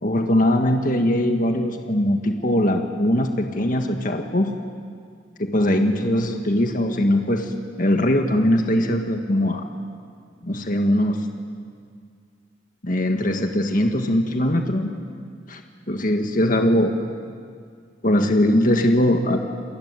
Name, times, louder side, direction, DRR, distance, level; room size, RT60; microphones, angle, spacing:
voice 1, 0.0-4.5 5.4-7.5 7.8-9.6 10.4-11.3 12.8-14.9 15.5-15.6 15.9-16.9 18.0-19.4, left 1 dB, 45° left, 4 dB, 1.8 m, -21 dB
28.5 x 20.5 x 9.8 m, 2.2 s
head